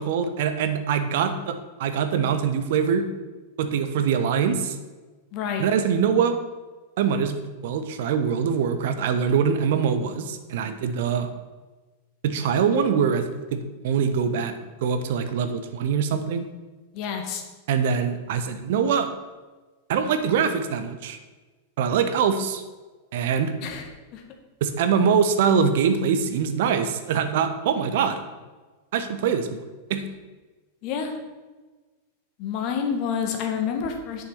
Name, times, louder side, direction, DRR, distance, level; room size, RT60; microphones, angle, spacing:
voice 1, 0.0-3.1 3.6-4.8 5.6-6.4 7.0-11.3 12.2-13.2 13.5-14.5 14.8-16.4 17.7-19.1 19.9-21.2 21.8-22.6 23.1-23.5 24.6-28.2 28.9-29.6 29.9-30.0, right 7 dB, 55° right, 9 dB, 0.9 m, -23 dB
voice 2, 5.3-5.6 16.9-17.4 23.6-23.9 24.1-24.2 30.8-31.1 32.4-34.2, left 7 dB, 40° left, 3 dB, 1.7 m, -28 dB
9.7 x 6.6 x 5.9 m, 1.3 s
figure-of-eight pair, 90°, 0 cm